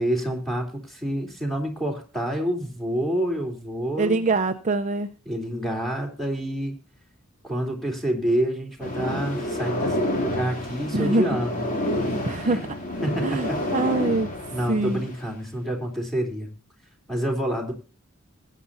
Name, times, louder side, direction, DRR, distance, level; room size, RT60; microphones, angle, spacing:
voice 1, 0.0-4.3 5.3-6.7 7.4-11.7 12.4-12.7 13.0-13.6 14.5-16.5 17.1-17.7, right 1 dB, ahead, 1 dB, 3.6 m, -28 dB
voice 2, 4.0-5.1 10.9-11.3 12.0-12.6 13.2-14.3 14.7-15.1, right 3 dB, 35° right, 6 dB, 0.7 m, -24 dB
sound 1, 8.8-15.2, left 1 dB, 40° left, 3.1 m, -28 dB
20.0 x 9.2 x 2.8 m, 0.36 s
head